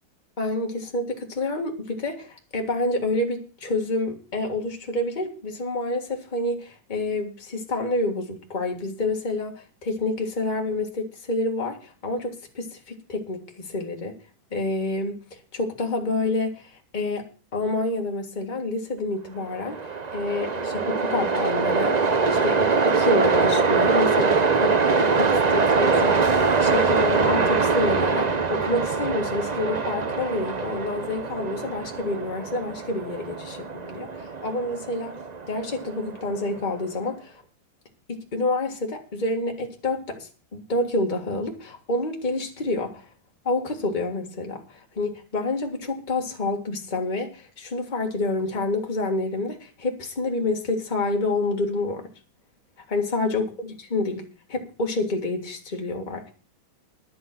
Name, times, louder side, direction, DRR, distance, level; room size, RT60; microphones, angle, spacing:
voice 1, 0.4-14.2 14.5-15.2 15.5-17.3 17.5-34.1 34.4-35.1 35.5-37.3 38.1-43.0 43.5-52.1 52.9-56.3, left 2 dB, 25° left, 1 dB, 1.9 m, -28 dB
Train, 19.5-36.7, right 4 dB, 80° right, 0.3 m, -23 dB
11.0 x 7.6 x 7.5 m, 0.37 s
omnidirectional pair, 2.2 m